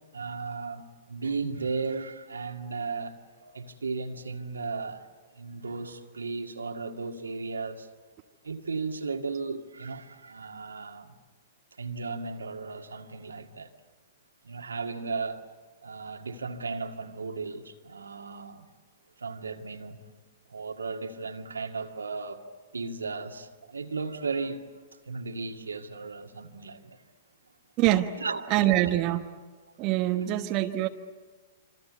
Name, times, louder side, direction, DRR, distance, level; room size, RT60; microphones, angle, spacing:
voice 1, 0.1-3.1 3.4-5.1 5.3-7.9 8.4-11.2 11.8-13.7 14.4-15.4 15.8-18.7 19.2-20.0 20.5-22.4 22.7-24.6 25.1-27.0 28.2-28.5, right 4 dB, 80° right, 2.1 m, -35 dB
voice 2, 27.8-28.1 28.5-29.3 29.8-30.9, right 14 dB, 40° right, 1.2 m, -24 dB
26.5 x 26.5 x 8.3 m
figure-of-eight pair, 105°, 0 cm